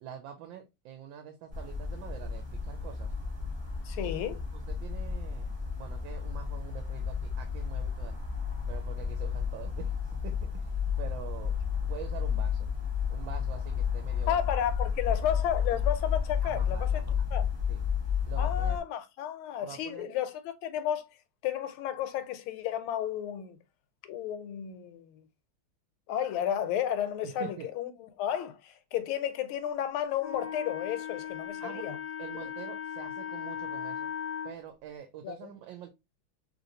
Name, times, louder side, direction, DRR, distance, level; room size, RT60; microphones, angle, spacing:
voice 1, 0.0-3.1 4.0-4.1 4.5-8.2 8.7-11.5 11.8-12.7 13.1-14.4 16.4-17.3 17.7-17.8 18.3-18.8 19.6-20.1 27.2-27.7 31.6-34.1 34.4-35.9, right 9 dB, 75° right, 1.2 m, -45 dB
sound 1, 1.5-18.8, left 7 dB, 15° right, 1.0 m, -32 dB
voice 2, 3.8-4.4 14.3-17.0 17.3-17.4 18.4-21.1 21.4-23.6 24.0-25.2 26.1-32.0 35.2-35.4, left 10 dB, 85° left, 1.4 m, -32 dB
Wind instrument woodwind instrument, 30.2-34.5, left 8 dB, 50° left, 0.8 m, -38 dB
3.1 x 2.9 x 2.6 m
omnidirectional pair, 2.3 m